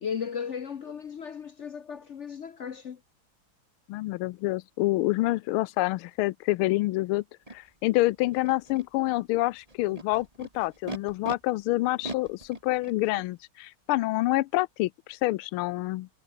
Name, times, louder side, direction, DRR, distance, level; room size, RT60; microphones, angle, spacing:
voice 1, 0.0-3.0, left 7 dB, 60° left, 0.7 m, -36 dB
voice 2, 3.9-7.2 7.5-16.1, left 19 dB, 85° left, 1.5 m, -27 dB
Animal, 7.5-7.6 8.3-8.8 9.7-11.3 12.0-13.3, right 2 dB, 15° right, 3.2 m, -39 dB
omnidirectional pair, 2.3 m